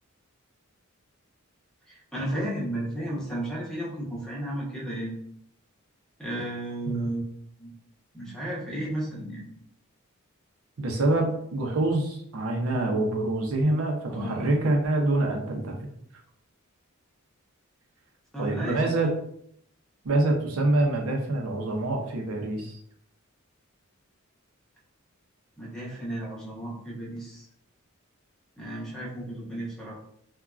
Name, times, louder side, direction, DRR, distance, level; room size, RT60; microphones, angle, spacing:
voice 1, 1.9-5.2 6.2-7.2 7.6-7.7 8.1-9.4 14.1-14.5 18.3-18.8 25.6-27.5 28.6-29.9, right 1 dB, 5° left, -5 dB, 0.9 m, -33 dB
voice 2, 10.8-15.8 18.4-19.1 20.0-22.8, right 2 dB, 75° right, 1 dB, 0.6 m, -26 dB
3.4 x 2.2 x 2.4 m, 0.67 s
head